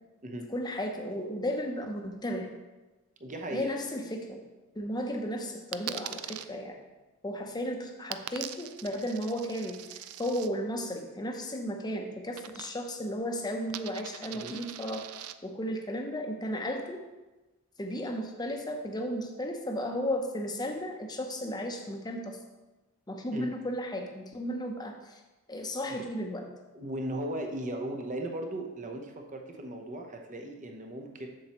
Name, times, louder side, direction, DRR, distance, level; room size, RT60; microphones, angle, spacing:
voice 1, 0.5-2.5 3.5-4.4 4.7-6.8 7.2-15.1 15.4-17.0 17.8-22.4 23.1-25.2 25.5-26.5, equal, 20° left, 3 dB, 0.7 m, -34 dB
voice 2, 3.2-3.7 14.3-14.6 23.3-23.5 25.8-26.0 26.7-31.3, right 1 dB, 35° right, 3 dB, 0.8 m, -37 dB
Coin (dropping), 5.7-6.5 8.1-10.5 12.3-13.0 13.3-15.3, right 12 dB, 75° right, 0.3 m, -42 dB
7.5 x 7.0 x 3.0 m, 1.1 s
head